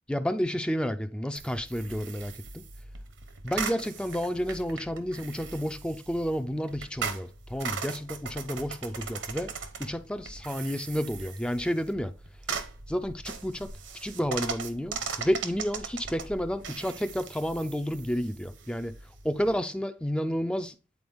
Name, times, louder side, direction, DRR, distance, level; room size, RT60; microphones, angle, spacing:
voice 1, 0.1-2.7 3.4-9.5 9.8-12.1 12.9-13.7 14.0-19.0 19.2-20.7, equal, 5° left, 0.4 m, -31 dB
sound 1, 1.4-19.6, right 5 dB, 70° right, 1.0 m, -39 dB
9.4 x 4.3 x 3.5 m
head